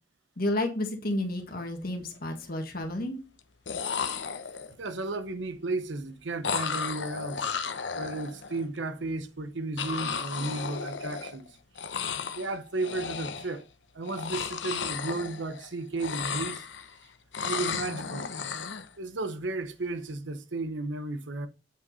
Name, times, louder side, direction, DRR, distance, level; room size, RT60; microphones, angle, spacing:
voice 1, 0.4-3.2, left 1 dB, 55° left, 1.6 m, -31 dB
sound 1, 1.2-1.4 1.8-2.4 3.4-3.5 3.7-4.9 6.4-8.6 9.8-11.5 11.7-12.5 12.8-13.6 14.0-15.7 15.9-17.0 17.3-18.9, left 6 dB, 70° left, 0.8 m, -34 dB
voice 2, 4.8-7.5 7.9-11.5 12.3-13.7 13.9-16.6 17.4-18.3 19.0-21.5, right 2 dB, 75° right, 0.9 m, -34 dB
7.9 x 5.5 x 4.0 m
head